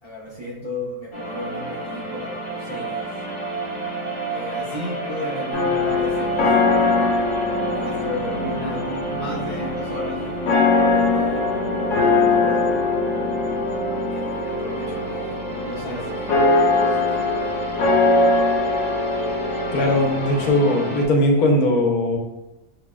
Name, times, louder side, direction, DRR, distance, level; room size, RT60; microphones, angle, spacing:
voice 1, 0.0-3.1 4.3-6.5 7.0-12.8 14.1-15.4 15.6-17.7, left 1 dB, 45° right, -8 dB, 0.3 m, -34 dB
sound 1, 1.1-21.1, right 2 dB, 35° left, 0.5 m, -30 dB
sound 2, 5.5-20.5, left 3 dB, 60° left, 1.0 m, -22 dB
voice 2, 19.7-22.2, left 1 dB, 85° left, 1 dB, 1.1 m, -19 dB
5.8 x 2.0 x 2.3 m, 0.96 s
omnidirectional pair, 1.5 m